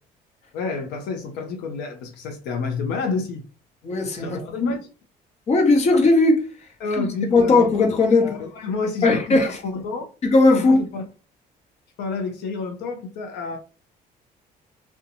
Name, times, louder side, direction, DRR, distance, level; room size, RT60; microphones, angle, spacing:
voice 1, 0.5-3.4 4.2-4.9 6.8-7.7 8.2-10.1 10.5-11.0 12.0-13.6, left 4 dB, 85° left, 0.6 m, -29 dB
voice 2, 3.8-4.7 5.5-6.4 6.9-8.4 9.0-9.6 10.2-10.8, left 3 dB, 40° left, 0.8 m, -18 dB
2.5 x 2.2 x 2.8 m
cardioid pair, 110°, 17 cm